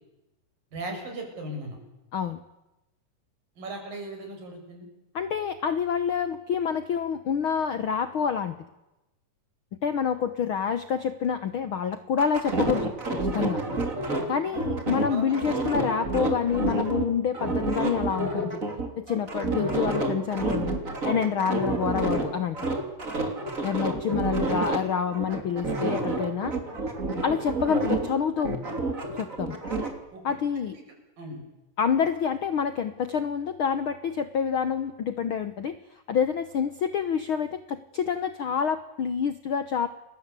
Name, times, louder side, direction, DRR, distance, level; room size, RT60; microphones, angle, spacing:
voice 1, 0.7-1.8 3.6-4.9 15.1-15.6 23.9-24.2 30.1-30.2 30.5-30.7 31.2-31.4, right 2 dB, 75° right, 3 dB, 8.3 m, -37 dB
voice 2, 5.1-8.6 9.8-12.9 13.2-13.6 14.3-18.6 19.0-20.8 21.0-22.6 23.6-26.6 27.2-28.6 29.2-29.6 30.2-30.8 31.8-35.8 36.1-39.9, left 7 dB, 90° left, 11 dB, 1.1 m, -27 dB
sound 1, 12.2-17.0 17.3-22.3 22.5-24.8 25.1-28.1 28.4-29.9, right 2 dB, 25° right, 3.2 m, -29 dB
29.5 x 22.5 x 8.4 m, 0.97 s
omnidirectional pair, 4.0 m